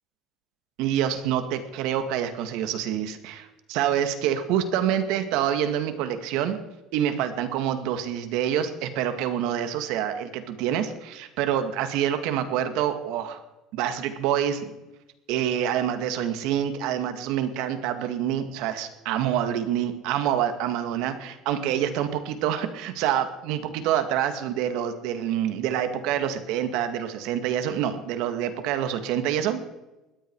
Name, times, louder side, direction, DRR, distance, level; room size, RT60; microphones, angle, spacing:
voice 1, 0.8-6.6 6.9-13.4 13.7-14.7 15.3-29.6, right 10 dB, 75° right, 9 dB, 2.1 m, -27 dB
20.0 x 14.5 x 4.8 m, 1.0 s
cardioid pair, 145°, 0 cm